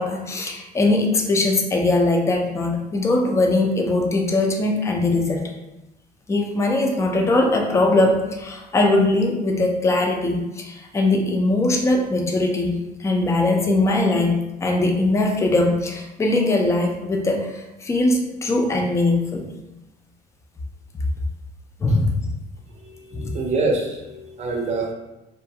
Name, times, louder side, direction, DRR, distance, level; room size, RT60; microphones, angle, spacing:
voice 1, 0.0-5.5 6.3-19.5 21.8-22.2 23.1-23.4, left 2 dB, 15° left, 1 dB, 0.4 m, -21 dB
voice 2, 23.1-24.9, right 3 dB, 40° right, 1 dB, 0.6 m, -25 dB
2.3 x 2.2 x 2.7 m, 0.98 s
cardioid pair, 110°, 17 cm